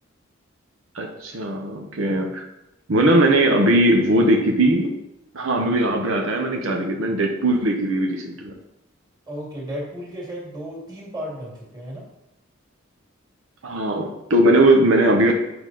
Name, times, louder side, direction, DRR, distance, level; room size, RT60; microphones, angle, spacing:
voice 1, 0.9-2.4 2.9-4.9 5.3-8.5 13.6-15.3, right 1 dB, 80° right, 1 dB, 0.9 m, -19 dB
voice 2, 9.3-12.1, equal, 20° right, -3 dB, 2.1 m, -34 dB
8.8 x 4.8 x 3.9 m, 0.89 s
head